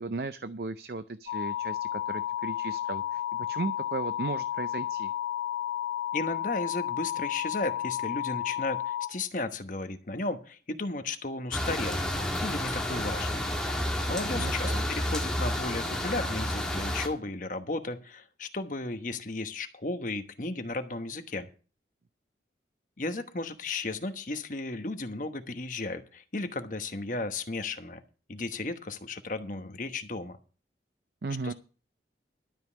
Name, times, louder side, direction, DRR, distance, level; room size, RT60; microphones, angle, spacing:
voice 1, 0.0-3.2 3.5-5.1 14.3-14.8 31.2-31.5, right 3 dB, 60° right, 13 dB, 0.5 m, -36 dB
sound 1, 1.3-9.1, left 12 dB, 90° left, 2.0 m, -32 dB
voice 2, 6.1-12.0 12.4-13.5 14.1-21.5 23.0-28.0 28.3-30.4 31.4-31.5, left 2 dB, 45° left, 8 dB, 1.1 m, -34 dB
sound 2, 11.5-17.1, left 1 dB, 5° left, 1.8 m, -30 dB
12.5 x 5.4 x 8.3 m, 0.37 s
head